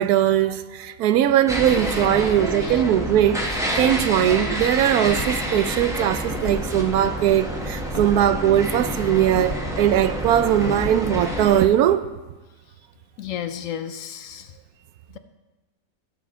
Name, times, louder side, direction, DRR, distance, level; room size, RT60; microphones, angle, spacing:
voice 1, 0.0-12.1, right 11 dB, 85° right, 1.1 m, -20 dB
sound 1, 1.5-11.7, equal, 5° right, 0.9 m, -28 dB
sound 2, 4.9-5.5 6.2-6.6 7.9-8.2 9.3-9.7 10.6-11.0, left 2 dB, 40° left, 1.8 m, -33 dB
voice 2, 13.2-14.5 15.1-15.2, left 9 dB, 70° left, 0.9 m, -33 dB
15.5 x 6.9 x 3.6 m
omnidirectional pair, 1.6 m